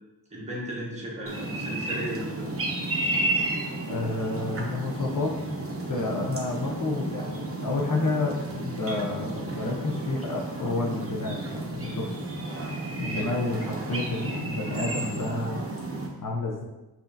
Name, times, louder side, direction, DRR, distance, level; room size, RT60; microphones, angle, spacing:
voice 1, 0.3-2.5, equal, 15° right, -5 dB, 1.2 m, -35 dB
sound 1, 1.3-16.1, right 2 dB, 35° right, 0.8 m, -32 dB
voice 2, 3.9-5.4 5.9-12.2 13.0-15.6 16.2-16.6, left 2 dB, 50° left, 0 dB, 0.7 m, -30 dB
5.3 x 2.7 x 2.5 m, 1.1 s
cardioid pair, 65°, 42 cm